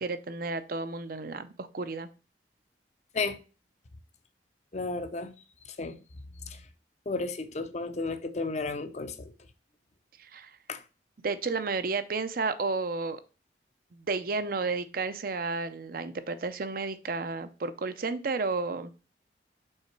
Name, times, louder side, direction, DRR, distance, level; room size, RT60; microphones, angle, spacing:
voice 1, 0.0-2.1 10.2-10.5 11.2-13.2 13.9-18.9, right 4 dB, 50° right, 0.6 m, -32 dB
voice 2, 4.7-5.3 5.7-6.0 6.5-6.6 7.1-9.3 10.7-10.8, left 3 dB, 40° left, 0.6 m, -33 dB
5.6 x 3.9 x 4.5 m
head